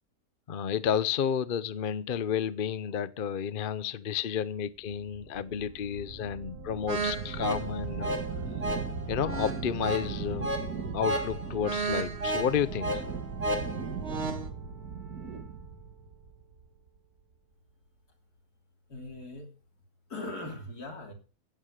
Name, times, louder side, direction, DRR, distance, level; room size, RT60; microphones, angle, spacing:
voice 1, 0.5-8.2 9.1-10.5 10.9-13.0, left 8 dB, 50° left, 0.7 m, -31 dB
sound 1, 4.9-17.0, right 5 dB, 65° right, 2.0 m, -38 dB
sound 2, 6.9-14.5, right 2 dB, 40° right, 2.1 m, -33 dB
voice 2, 18.9-19.6 20.1-21.1, left 2 dB, 70° left, 3.6 m, -40 dB
16.0 x 8.9 x 6.5 m
omnidirectional pair, 1.7 m